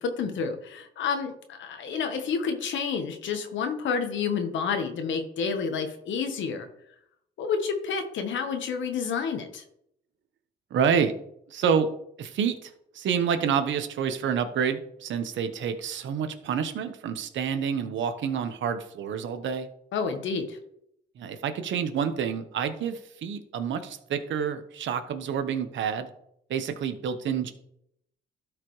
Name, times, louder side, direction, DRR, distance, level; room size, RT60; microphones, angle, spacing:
voice 1, 0.0-6.7 7.4-9.6 19.9-20.6, left 5 dB, 70° left, 6 dB, 1.2 m, -29 dB
voice 2, 10.7-11.1 11.5-11.9 12.2-19.7 21.2-26.1 26.5-27.5, right 7 dB, 70° right, 9 dB, 1.1 m, -28 dB
12.5 x 5.0 x 3.2 m, 0.73 s
cardioid pair, 90°, 20 cm